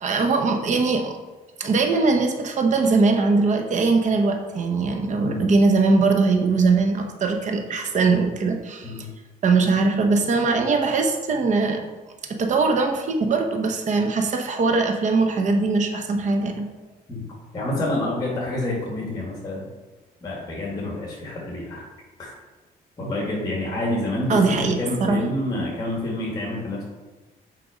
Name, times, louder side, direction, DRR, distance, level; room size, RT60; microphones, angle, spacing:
voice 1, 0.0-1.1 1.6-9.1 9.4-11.8 12.3-16.7 24.3-24.7 25.0-25.2, right 3 dB, 45° right, 4 dB, 0.9 m, -21 dB
voice 2, 5.2-5.5 8.8-9.1 17.1-17.2 17.5-19.7 20.2-21.8 22.2-22.3 23.0-26.8, left 1 dB, 25° left, -4 dB, 2.0 m, -28 dB
6.3 x 4.6 x 5.0 m, 1.2 s
cardioid pair, 110°, 17 cm